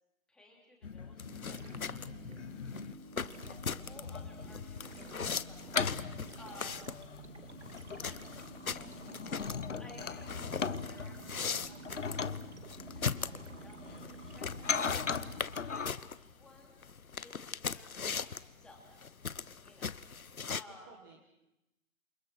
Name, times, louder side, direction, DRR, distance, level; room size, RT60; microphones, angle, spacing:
voice 1, 0.3-2.5 3.5-6.7 8.0-8.4 9.8-12.2 12.9-16.8 17.2-19.0 19.6-19.9 20.5-20.9, left 2 dB, ahead, -2 dB, 3.0 m, -58 dB
sound 1, 0.8-2.9 3.4-15.9, left 5 dB, 60° left, 1.2 m, -40 dB
sound 2, 1.2-20.6, left 6 dB, 85° left, 1.1 m, -40 dB
sound 3, 1.2-15.4, right 3 dB, 55° right, 2.4 m, -51 dB
voice 2, 20.7-21.3, right 5 dB, 15° right, 1 dB, 1.6 m, -56 dB
28.5 x 28.5 x 6.2 m, 0.90 s
figure-of-eight pair, 160°, 41 cm